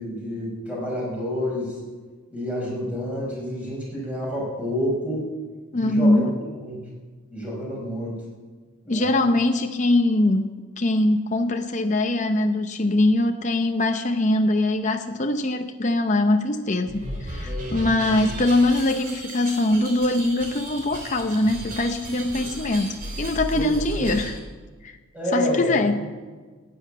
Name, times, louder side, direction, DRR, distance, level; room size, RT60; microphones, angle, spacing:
voice 1, 0.0-1.8 2.3-5.3 5.7-6.3 6.6-6.9 7.3-8.2 8.8-9.3 17.4-18.2 23.5-24.1 25.1-26.1, equal, 5° right, -4 dB, 5.0 m, -29 dB
voice 2, 5.7-6.4 8.9-24.4 24.8-25.0 25.3-26.0, left 2 dB, 35° left, 6 dB, 0.7 m, -22 dB
sound 1, 16.9-24.4, equal, 45° right, 3.1 m, -34 dB
12.5 x 8.7 x 9.0 m, 1.4 s
head